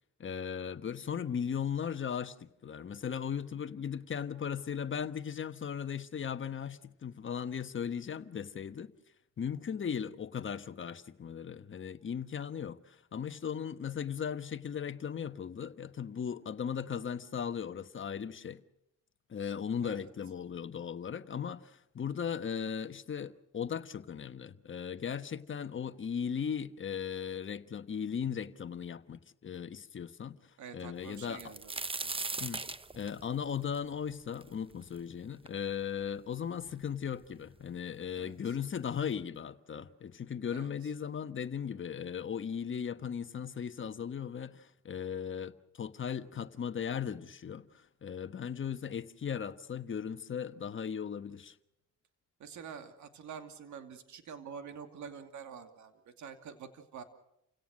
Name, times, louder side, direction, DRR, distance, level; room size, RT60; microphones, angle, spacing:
voice 1, 0.2-8.9 9.4-18.6 19.3-31.5 32.4-32.7 32.9-51.6, left 7 dB, 40° left, 1.2 m, -37 dB
voice 2, 30.6-31.7 32.0-32.1 38.2-38.5 40.5-40.7 52.4-57.0, right 7 dB, 70° right, 2.6 m, -47 dB
sound 1, 31.1-35.0 35.5-35.6 36.3-36.4 36.7-37.3 38.2-38.3 38.7-38.9, right 3 dB, 20° right, 0.9 m, -39 dB
29.5 x 17.5 x 6.5 m
cardioid pair, 90°, 30 cm